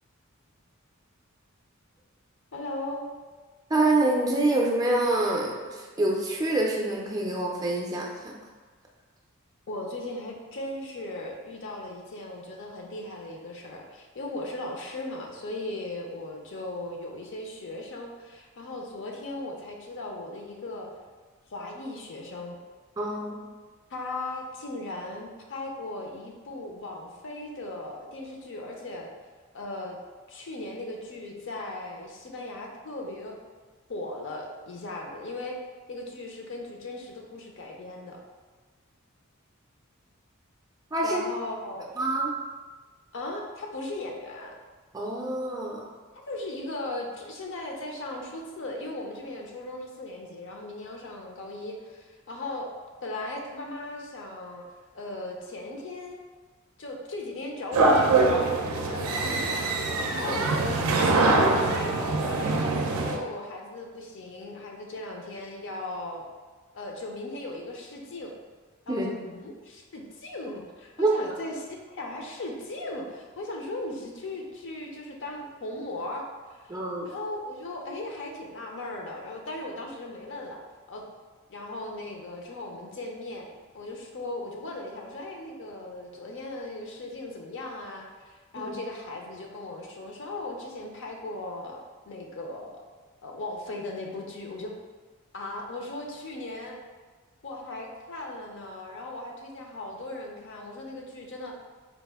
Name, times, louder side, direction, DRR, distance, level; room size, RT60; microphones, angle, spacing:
voice 1, 2.5-3.2 9.7-20.9 21.5-22.6 23.9-29.1 29.5-30.0 30.3-33.3 33.9-35.6 35.9-38.2 41.0-41.9 43.1-44.5 46.3-52.7 53.0-54.6 54.9-56.2 56.8-59.8 60.1-62.7 63.0-66.3 66.7-68.3 68.9-76.2 76.6-76.8 77.0-80.6 80.9-81.0 81.5-83.5 83.7-92.8 93.2-94.7 95.3-96.8 97.4-101.5, left 2 dB, 60° left, 1 dB, 0.5 m, -37 dB
voice 2, 3.7-8.3 23.0-23.4 40.9-41.2 42.0-42.3 44.9-45.9 60.2-60.3 68.9-69.1 71.0-71.1 76.7-77.1 88.5-88.7, right 2 dB, 15° right, -2 dB, 0.4 m, -26 dB
sound 1, 57.7-63.2, right 3 dB, 80° right, 0.4 m, -24 dB
4.0 x 2.4 x 3.5 m, 1.4 s
head